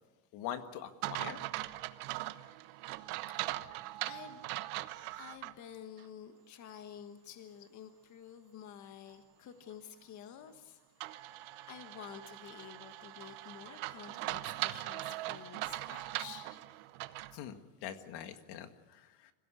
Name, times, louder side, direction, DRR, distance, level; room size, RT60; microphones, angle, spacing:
voice 1, 0.3-1.4 17.3-19.3, left 10 dB, 60° left, 8 dB, 1.9 m, -43 dB
sound 1, 1.0-5.5 6.0-6.1 11.0-17.4, right 18 dB, 80° right, 1.3 m, -40 dB
voice 2, 3.3-3.8 4.0-4.4 5.1-11.4 11.7-16.5, left 9 dB, 40° left, 7 dB, 1.5 m, -51 dB
26.0 x 16.5 x 8.4 m, 1.2 s
cardioid pair, 155°, 45 cm